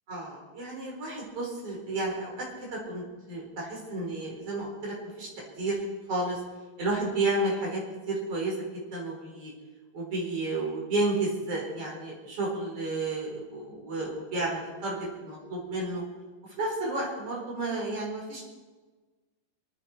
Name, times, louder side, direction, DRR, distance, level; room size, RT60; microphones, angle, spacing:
voice 1, 0.1-5.3 5.6-5.7 6.1-6.4 6.8-7.8 8.1-9.5 9.9-16.0 16.6-18.5, right 2 dB, 45° right, -2 dB, 5.1 m, -32 dB
27.0 x 9.7 x 4.4 m, 1.4 s
omnidirectional pair, 3.9 m